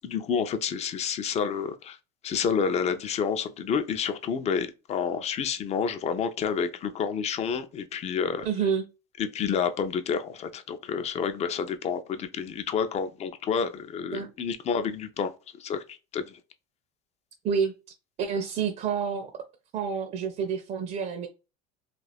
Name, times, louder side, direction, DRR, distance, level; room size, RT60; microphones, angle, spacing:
voice 1, 0.0-2.0 2.2-8.5 9.2-15.3 15.6-16.4, left 6 dB, 35° left, 0.5 m, -29 dB
voice 2, 8.4-8.8 14.1-14.3 17.4-17.7 18.2-19.3 19.7-21.3, right 6 dB, 40° right, 0.5 m, -28 dB
2.4 x 2.2 x 3.3 m
supercardioid pair, 105°, 20 cm